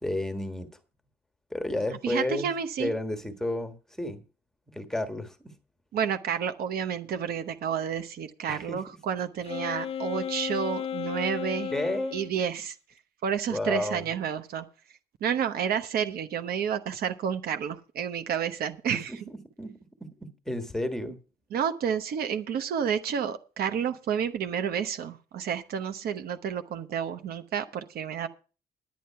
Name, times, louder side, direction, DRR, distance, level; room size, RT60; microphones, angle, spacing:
voice 1, 0.0-0.7 1.5-2.5 2.8-4.2 4.7-5.5 8.5-8.8 11.7-12.2 13.5-14.1 18.9-21.2, left 1 dB, 5° left, 1.5 m, -32 dB
voice 2, 2.0-2.9 5.9-11.7 12.1-12.8 13.2-14.6 15.2-19.1 21.5-28.3, right 8 dB, 65° right, 0.9 m, -30 dB
Wind instrument woodwind instrument, 9.4-12.3, left 8 dB, 35° left, 0.5 m, -34 dB
10.0 x 9.4 x 5.7 m
cardioid pair, 110°, 17 cm